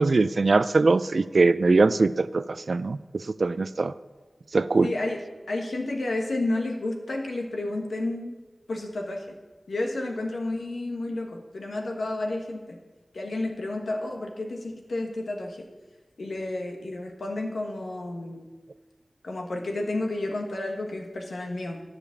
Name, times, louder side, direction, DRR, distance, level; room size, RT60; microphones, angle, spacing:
voice 1, 0.0-3.9 4.5-4.9, right 3 dB, 65° right, 14 dB, 0.4 m, -22 dB
voice 2, 4.8-5.2 5.5-8.3 8.7-9.2 9.7-12.8 13.1-15.7 16.2-18.4 19.2-21.8, left 2 dB, 85° left, 2 dB, 1.3 m, -31 dB
13.0 x 5.1 x 7.0 m, 1.3 s
wide cardioid pair, 80°, 0 cm